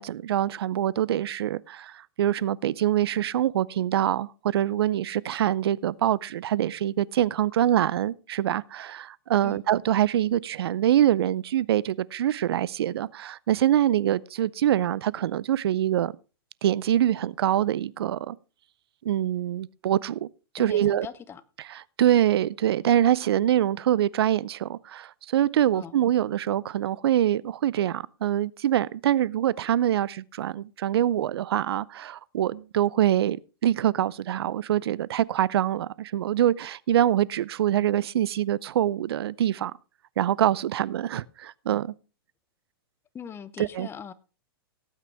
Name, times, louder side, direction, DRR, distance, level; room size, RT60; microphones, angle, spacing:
voice 1, 0.0-16.1 16.6-18.4 19.0-20.3 20.5-21.1 21.7-33.4 33.6-39.7 40.2-41.9 43.6-43.9, right 11 dB, 75° right, 0.5 m, -24 dB
voice 2, 20.6-21.4 25.7-26.0 43.1-44.1, left 7 dB, 20° left, 0.8 m, -40 dB
17.5 x 8.9 x 3.4 m
hypercardioid pair, 130°, 13 cm